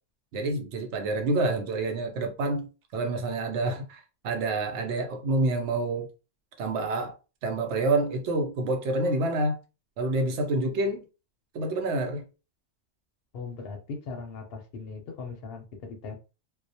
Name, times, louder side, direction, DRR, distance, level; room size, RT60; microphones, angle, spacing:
voice 1, 0.3-6.1 6.6-7.1 7.4-9.6 10.0-11.0 11.5-12.2, right 2 dB, 70° right, 0.8 m, -28 dB
voice 2, 13.3-16.1, left 4 dB, 65° left, 0.7 m, -39 dB
2.3 x 2.0 x 2.6 m
omnidirectional pair, 1.3 m